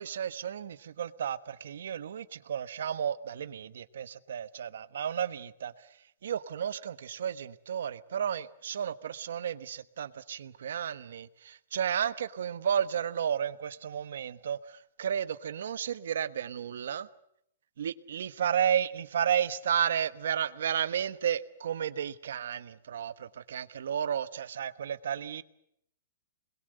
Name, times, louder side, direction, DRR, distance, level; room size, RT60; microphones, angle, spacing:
voice 1, 0.0-5.9 6.2-17.1 17.8-25.4, right 9 dB, 70° right, 1.2 m, -32 dB
27.0 x 21.5 x 7.9 m
hypercardioid pair, 165°, 0 cm